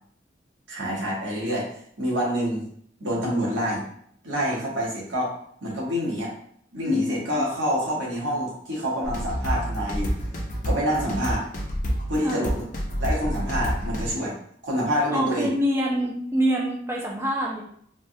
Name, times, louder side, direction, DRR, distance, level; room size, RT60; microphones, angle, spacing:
voice 1, 0.7-1.7 2.0-2.6 3.0-3.8 4.2-5.3 5.6-6.3 6.7-10.1 10.6-11.4 12.1-12.5 13.0-14.3 14.6-15.5, equal, 80° right, -5 dB, 1.1 m, -26 dB
sound 1, 9.0-14.1, equal, 40° left, 0.5 m, -28 dB
voice 2, 12.2-12.5 15.1-17.6, equal, 15° right, -2 dB, 0.4 m, -25 dB
3.3 x 2.2 x 2.6 m, 0.65 s
head